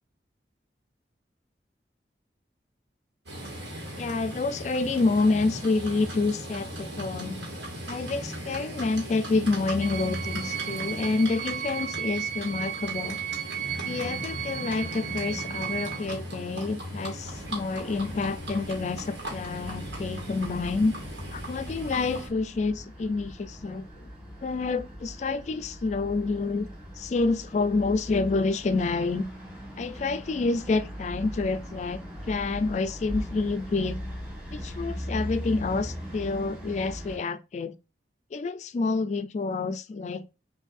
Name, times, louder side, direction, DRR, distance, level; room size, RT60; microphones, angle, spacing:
Livestock farm animals working animals, 3.3-22.3, equal, 85° right, 1.7 m, -38 dB
voice 1, 4.0-7.4 7.9-13.2 13.8-20.9 21.3-24.1 24.4-26.7 27.0-29.3 29.8-32.0 32.3-34.0 34.5-37.7 38.3-40.2, left 3 dB, 40° left, 0.3 m, -28 dB
sound 1, 9.8-16.1, right 10 dB, 70° right, 0.6 m, -35 dB
sound 2, 17.2-37.2, equal, 5° right, 1.2 m, -40 dB
6.3 x 2.6 x 2.5 m
head